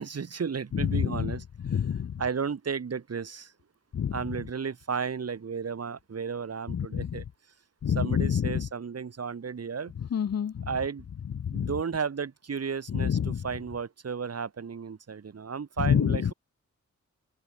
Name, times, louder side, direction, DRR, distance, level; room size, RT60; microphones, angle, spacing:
voice 1, 0.0-1.4 2.2-3.5 4.1-7.2 7.9-9.9 10.7-11.0 11.5-16.3, right 6 dB, 55° right, 1.8 m, -33 dB
voice 2, 0.7-1.3 1.6-2.2 3.9-4.1 6.7-7.2 7.8-8.7 10.0-10.7 11.4-11.7 12.9-13.5 15.8-16.3, left 8 dB, 55° left, 0.7 m, -27 dB
open air
wide cardioid pair, 95°, 30 cm